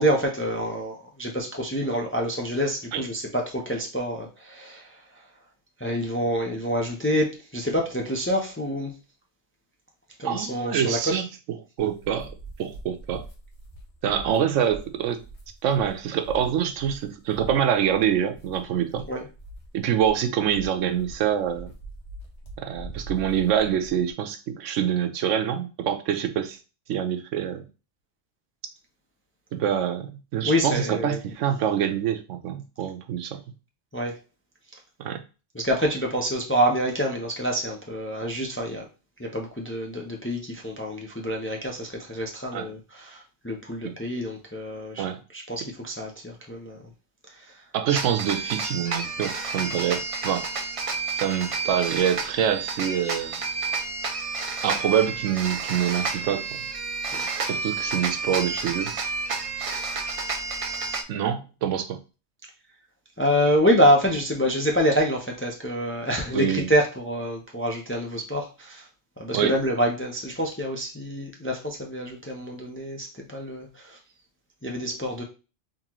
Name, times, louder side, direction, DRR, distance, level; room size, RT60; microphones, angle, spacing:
voice 1, 0.0-5.0 5.8-8.9 10.2-11.0 19.1-19.2 30.4-31.2 33.9-34.2 35.5-38.9 39.2-45.0 45.3-46.8 47.3-47.6 57.1-57.3 63.2-68.9 69.2-74.0 74.6-75.2, equal, 15° left, 0.4 m, -26 dB
voice 2, 10.2-11.2 11.8-12.3 12.6-13.2 14.0-15.2 15.6-19.0 19.7-21.7 22.6-26.6 26.9-27.7 29.5-33.4 35.0-35.2 42.5-42.7 43.8-43.9 45.0-45.2 47.7-50.5 51.2-53.4 54.6-56.4 57.5-58.9 61.1-62.0 66.3-66.7 69.3-69.5, right 9 dB, 85° right, 1.0 m, -25 dB
sound 1, 11.8-24.1, right 2 dB, 70° left, 1.4 m, -43 dB
sound 2, 47.9-61.0, right 4 dB, 50° right, 0.4 m, -30 dB
3.9 x 3.0 x 2.9 m
omnidirectional pair, 1.3 m